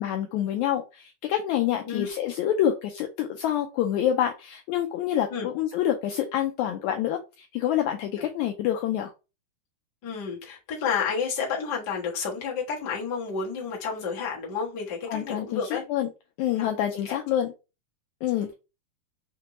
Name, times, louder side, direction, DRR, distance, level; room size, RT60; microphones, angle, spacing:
voice 1, 0.0-9.1 15.0-16.1 16.4-17.5 18.2-18.5, left 11 dB, 85° left, 1.7 m, -27 dB
voice 2, 10.0-15.8 16.6-16.7 17.0-17.2, left 6 dB, 50° left, 1.3 m, -30 dB
6.0 x 2.2 x 3.0 m
omnidirectional pair, 3.9 m